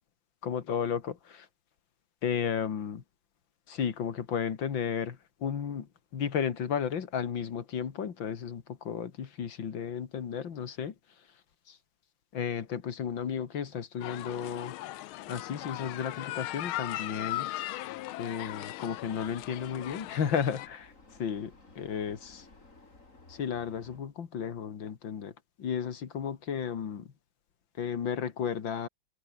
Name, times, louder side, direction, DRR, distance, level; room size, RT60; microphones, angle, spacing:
voice 1, 0.4-1.5 2.2-3.0 3.7-5.9 6.1-10.9 11.7-11.8 12.3-14.7 15.3-17.5 18.2-20.9 21.2-22.5 23.3-25.3 25.6-27.1 27.8-28.9, left 7 dB, 65° left, 2.6 m, -33 dB
sound 1, 14.0-20.7, left 15 dB, 85° left, 1.5 m, -38 dB
Vehicle, 19.0-24.0, left 3 dB, 35° left, 4.3 m, -56 dB
omnidirectional pair, 2.2 m